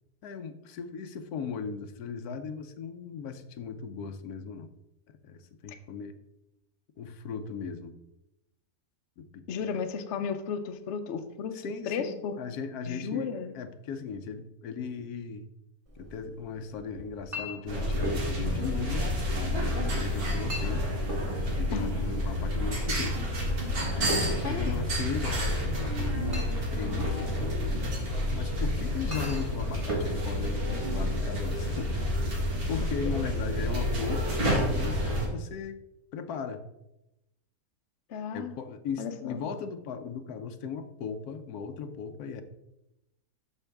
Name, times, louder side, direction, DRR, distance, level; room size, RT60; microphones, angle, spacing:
voice 1, 0.2-4.7 5.2-6.1 7.0-7.9 9.2-9.4 11.5-15.5 16.0-20.9 21.6-23.2 23.9-26.4 26.7-27.5 28.3-31.9 32.7-35.8 36.1-36.6 38.3-42.4, left 6 dB, 90° left, 8 dB, 1.2 m, -37 dB
voice 2, 9.5-12.4 12.9-13.5 21.7-21.9 24.4-24.8 33.0-33.1 38.1-38.6 39.0-39.4, left 6 dB, 60° left, 8 dB, 0.9 m, -34 dB
Chink clink, 15.9-31.4, equal, 20° right, 1.6 m, -41 dB
sound 1, 17.7-35.3, equal, 90° right, 2.3 m, -29 dB
12.5 x 4.6 x 3.4 m, 0.90 s
omnidirectional pair, 1.5 m